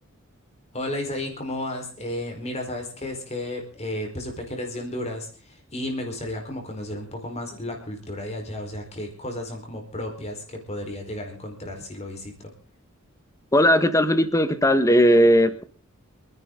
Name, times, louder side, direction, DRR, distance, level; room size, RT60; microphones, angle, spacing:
voice 1, 0.7-12.5, left 1 dB, 30° left, 2 dB, 4.5 m, -33 dB
voice 2, 13.5-15.6, equal, 15° left, 11 dB, 1.4 m, -18 dB
28.0 x 10.5 x 3.9 m, 0.38 s
head